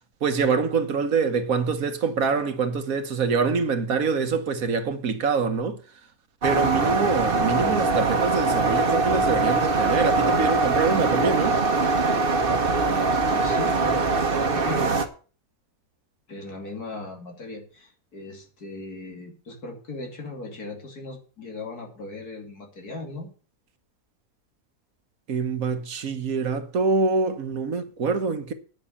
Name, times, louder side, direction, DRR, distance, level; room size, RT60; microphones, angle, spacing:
voice 1, 0.2-5.8 6.4-11.6 25.3-28.5, right 5 dB, 65° right, 1.6 m, -25 dB
sound 1, 6.4-15.1, right 3 dB, 40° right, 1.2 m, -22 dB
voice 2, 12.9-14.0 14.5-15.0 16.3-23.3, left 2 dB, 80° left, 3.3 m, -38 dB
9.9 x 6.2 x 8.4 m
omnidirectional pair, 1.6 m